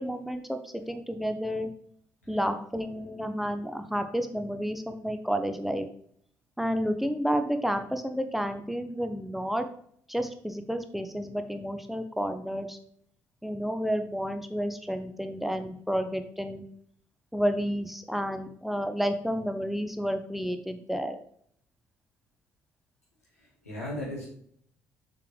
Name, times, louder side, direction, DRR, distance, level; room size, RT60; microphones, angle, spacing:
voice 1, 0.0-1.7 2.3-5.9 6.6-9.7 10.1-12.8 13.4-16.6 17.3-21.2, equal, ahead, 7 dB, 0.8 m, -30 dB
voice 2, 23.3-24.3, left 1 dB, 90° left, -6 dB, 2.1 m, -37 dB
6.8 x 5.0 x 3.3 m, 0.63 s
figure-of-eight pair, 45°, 8 cm